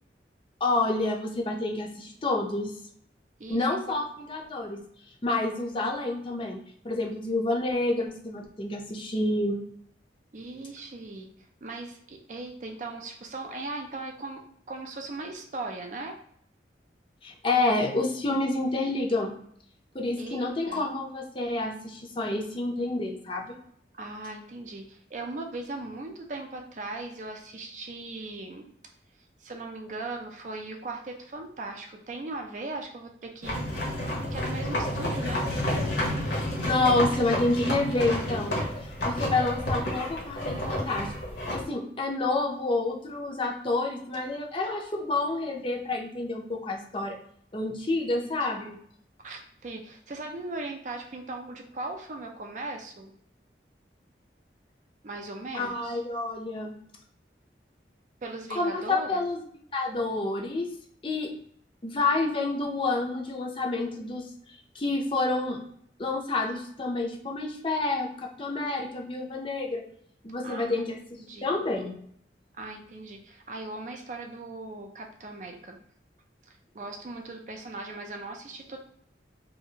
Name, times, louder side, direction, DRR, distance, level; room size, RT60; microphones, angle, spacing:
voice 1, 0.6-2.7 3.5-4.8 5.2-6.6 6.8-9.6 17.2-19.4 19.9-23.6 36.7-38.6 38.8-41.1 41.5-47.2 47.5-48.8 55.5-56.8 58.5-60.7 61.0-61.3 61.8-64.3 64.7-65.6 66.0-69.8 70.2-72.0, left 2 dB, 30° left, 1 dB, 0.5 m, -28 dB
voice 2, 3.4-4.0 10.3-11.3 11.6-16.2 20.2-20.9 24.0-28.7 29.4-33.6 34.3-35.5 48.1-48.8 49.2-53.1 55.0-56.0 58.2-59.2 70.4-70.9 71.2-71.6 72.5-75.8 76.5-78.8, right 2 dB, 45° right, 3 dB, 0.4 m, -39 dB
sound 1, 33.4-41.6, left 1 dB, 75° left, 0.9 m, -30 dB
2.7 x 2.5 x 2.7 m, 0.67 s
head